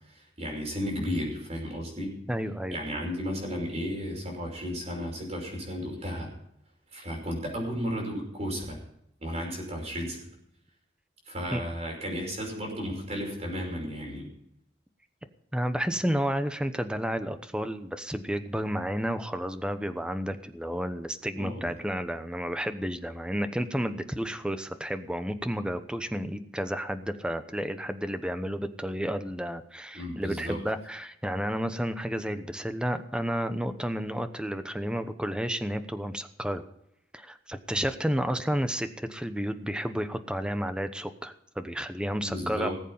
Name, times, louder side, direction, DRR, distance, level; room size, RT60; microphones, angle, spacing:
voice 1, 0.1-2.2 2.7-6.3 6.9-8.8 9.2-10.2 11.3-14.3 21.4-21.7 29.9-30.6 42.2-42.8, equal, 35° right, 1 dB, 5.5 m, -34 dB
voice 2, 2.3-2.8 11.5-11.6 15.5-36.6 37.1-42.7, equal, 5° right, 9 dB, 0.9 m, -31 dB
19.0 x 8.2 x 5.6 m, 0.77 s
head